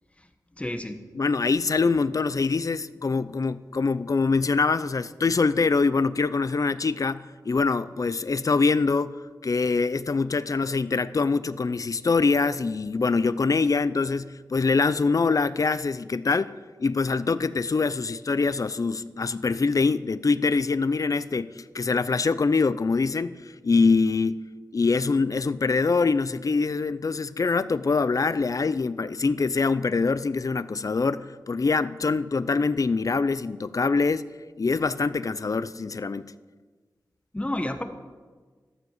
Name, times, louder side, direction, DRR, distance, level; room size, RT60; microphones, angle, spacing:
voice 1, 0.6-1.0 37.3-37.8, left 1 dB, 15° left, 7 dB, 1.2 m, -30 dB
voice 2, 1.1-16.5 16.8-23.4 23.6-24.4 24.7-34.2 34.6-36.3, left 4 dB, 50° left, 15 dB, 0.6 m, -24 dB
13.5 x 12.0 x 7.3 m, 1.4 s
wide cardioid pair, 85°, 7 cm